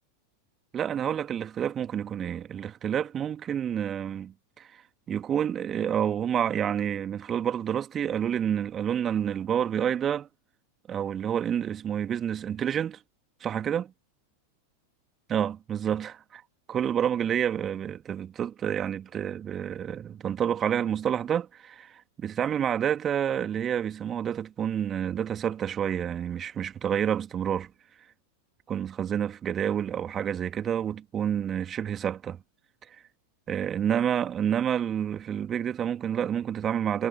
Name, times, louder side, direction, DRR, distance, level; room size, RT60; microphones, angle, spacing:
voice 1, 0.7-4.7 5.1-10.3 10.9-13.0 13.4-13.9 15.3-16.4 16.7-27.7 28.7-32.4 33.5-37.1, right 9 dB, 25° right, 2.4 m, -29 dB
figure-of-eight pair, 90°, 0 cm